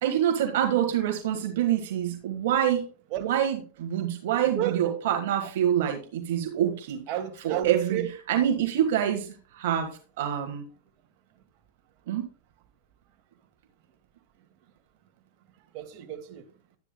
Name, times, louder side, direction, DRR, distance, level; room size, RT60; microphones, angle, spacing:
voice 1, 0.0-2.9 3.2-7.0 7.4-8.0 8.3-10.6 12.1-12.3, right 10 dB, 70° right, 1.5 m, -26 dB
voice 2, 7.1-8.1 15.7-16.4, right 11 dB, 50° right, 2.0 m, -32 dB
12.0 x 9.8 x 2.2 m
hypercardioid pair, 115°, 0 cm